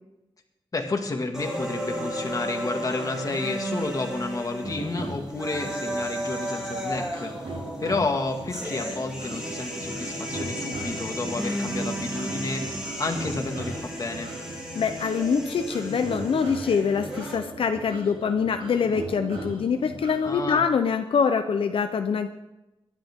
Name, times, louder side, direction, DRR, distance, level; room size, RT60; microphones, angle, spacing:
voice 1, 0.7-7.5 7.8-14.3 20.2-20.6, left 3 dB, 40° left, 3 dB, 2.0 m, -31 dB
sound 1, 1.3-17.4, equal, 5° right, 3.9 m, -34 dB
sound 2, 4.6-20.5, right 2 dB, 85° right, 6.1 m, -38 dB
voice 2, 14.7-22.3, left 6 dB, 85° left, 7 dB, 0.7 m, -24 dB
22.0 x 11.5 x 3.7 m, 0.97 s
wide cardioid pair, 130°, 9 cm